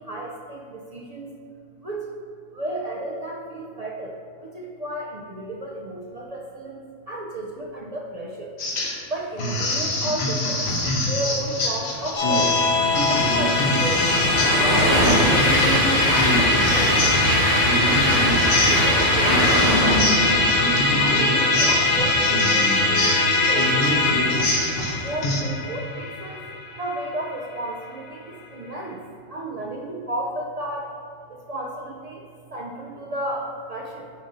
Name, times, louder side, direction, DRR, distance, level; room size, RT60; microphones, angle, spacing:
voice 1, 0.0-1.3 1.8-2.2 2.5-8.6 9.1-10.8 11.0-12.5 13.1-14.2 14.6-20.3 21.0-24.3 25.0-26.4 26.8-29.0 29.3-30.9 31.3-34.1, right 1 dB, 60° right, -3 dB, 0.4 m, -33 dB
sound 1, 8.6-9.1 9.4-25.4, left 1 dB, 60° left, 1.0 m, -26 dB
Train, 12.1-21.6, equal, 15° right, 0.8 m, -24 dB
Musical instrument, 12.2-27.7, left 3 dB, 75° left, 1.3 m, -22 dB
7.3 x 2.6 x 5.4 m, 2.3 s
omnidirectional pair, 1.3 m